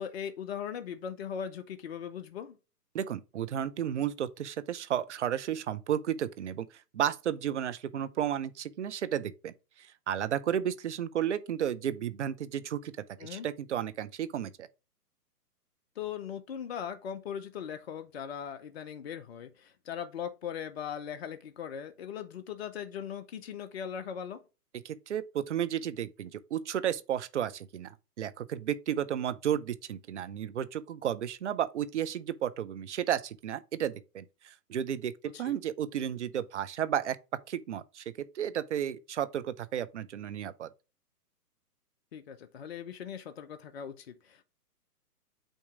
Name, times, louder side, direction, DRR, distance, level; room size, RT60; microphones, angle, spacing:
voice 1, 0.0-2.6 13.2-13.5 16.0-24.4 35.3-35.5 42.1-44.4, left 8 dB, 40° left, 0.7 m, -39 dB
voice 2, 2.9-6.7 6.9-9.5 9.8-12.9 13.2-14.7 24.8-37.2 37.5-38.0 38.3-40.7, right 10 dB, 45° right, 0.7 m, -33 dB
8.9 x 3.0 x 4.7 m
hypercardioid pair, 135°, 48 cm